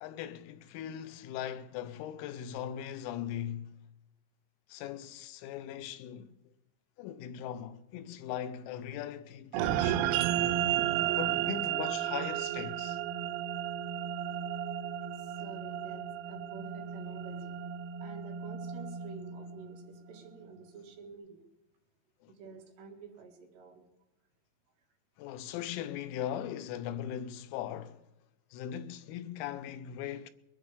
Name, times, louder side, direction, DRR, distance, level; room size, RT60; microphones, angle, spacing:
voice 1, 0.0-3.8 4.7-6.3 7.0-10.2 11.1-13.0 22.2-22.3 25.2-28.0 28.5-30.3, left 10 dB, 90° left, 3.5 m, -39 dB
sound 1, 9.5-20.2, right 11 dB, 90° right, 2.5 m, -33 dB
voice 2, 10.7-11.7 15.1-17.7 18.0-21.4 22.3-23.8, right 5 dB, 65° right, 3.7 m, -50 dB
22.0 x 11.5 x 4.9 m
omnidirectional pair, 5.9 m